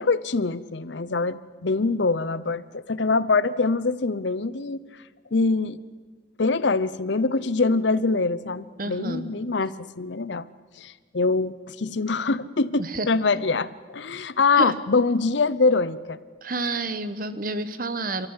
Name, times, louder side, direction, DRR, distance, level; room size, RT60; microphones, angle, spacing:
voice 1, 0.0-4.8 5.3-5.8 6.4-10.5 10.8-16.2, left 3 dB, 70° left, 16 dB, 0.8 m, -24 dB
voice 2, 8.8-9.3 12.8-13.1 14.6-14.7 16.4-18.3, right 2 dB, 45° right, 12 dB, 1.2 m, -29 dB
28.5 x 13.5 x 9.8 m, 1.5 s
head